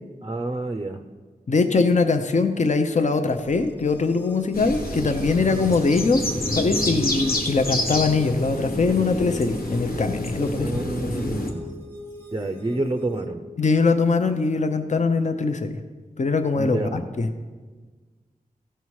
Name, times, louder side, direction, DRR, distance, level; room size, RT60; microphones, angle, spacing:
voice 1, 0.2-1.0 10.5-11.8 12.3-13.4 16.6-17.0, right 2 dB, 25° right, 6 dB, 0.5 m, -29 dB
voice 2, 1.5-6.2 6.5-11.3 13.6-15.7 16.2-17.3, left 4 dB, 50° left, 8 dB, 0.6 m, -22 dB
sound 1, 3.3-13.3, right 1 dB, 15° left, 1.1 m, -41 dB
sound 2, 4.5-11.5, left 1 dB, 80° left, 1.1 m, -28 dB
15.5 x 5.6 x 4.7 m, 1.4 s
wide cardioid pair, 85°, 15 cm